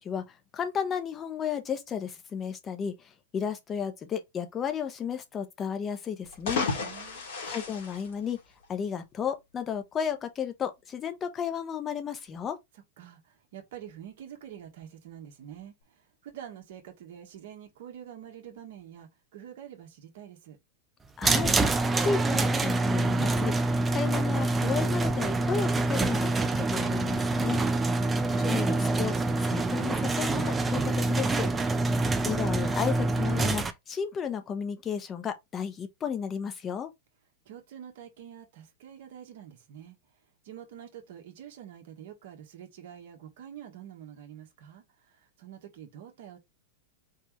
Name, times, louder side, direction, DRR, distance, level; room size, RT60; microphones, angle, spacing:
voice 1, 0.5-2.9 3.3-6.7 7.5-8.4 8.7-12.6 21.2-23.5 23.9-27.6 28.4-31.5 32.2-36.9, left 7 dB, 25° left, 1.1 m, -33 dB
sound 1, 6.2-8.8, left 4 dB, 60° left, 2.3 m, -33 dB
voice 2, 6.8-7.3 12.7-20.6 37.4-39.9 40.4-46.4, right 10 dB, 60° right, 1.3 m, -47 dB
sound 2, 21.2-33.7, right 2 dB, 15° right, 0.7 m, -26 dB
4.7 x 3.4 x 3.1 m
figure-of-eight pair, 95°, 0 cm